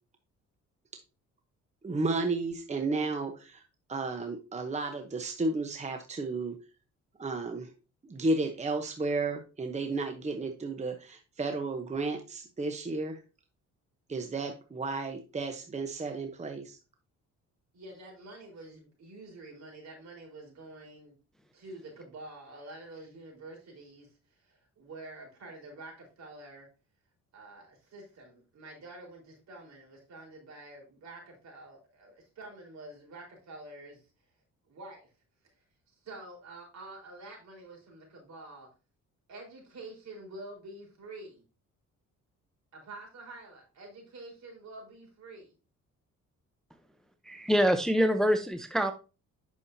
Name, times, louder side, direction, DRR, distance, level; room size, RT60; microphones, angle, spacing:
voice 1, 1.8-3.6 3.9-6.6 7.2-7.7 8.0-13.2 14.1-16.8, right 3 dB, 25° right, 5 dB, 0.9 m, -33 dB
voice 2, 17.7-21.2 21.5-24.1 24.4-26.7 27.3-34.0 34.7-35.0 36.0-38.7 39.3-41.4 42.7-45.5, right 2 dB, 65° right, 0 dB, 4.2 m, -47 dB
voice 3, 47.3-48.9, equal, ahead, 7 dB, 0.7 m, -25 dB
8.8 x 6.3 x 2.7 m, 0.32 s
cardioid pair, 90°, 30 cm